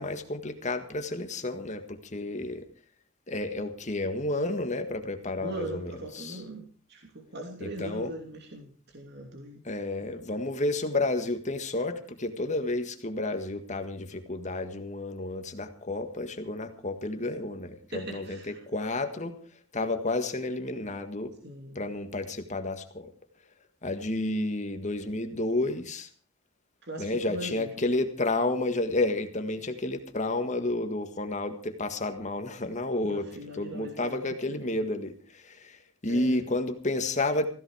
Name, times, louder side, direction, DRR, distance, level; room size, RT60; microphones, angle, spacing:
voice 1, 0.0-2.7 3.3-6.4 7.6-8.1 9.7-19.4 19.7-21.3 21.8-23.1 23.8-26.1 27.0-35.8 36.0-37.5, left 2 dB, 35° left, 8 dB, 1.7 m, -31 dB
voice 2, 5.4-9.6 17.9-18.6 21.4-21.8 26.8-27.7 33.0-34.6 36.1-36.4, right 1 dB, 55° right, 2 dB, 3.0 m, -40 dB
16.5 x 15.5 x 4.9 m, 0.41 s
head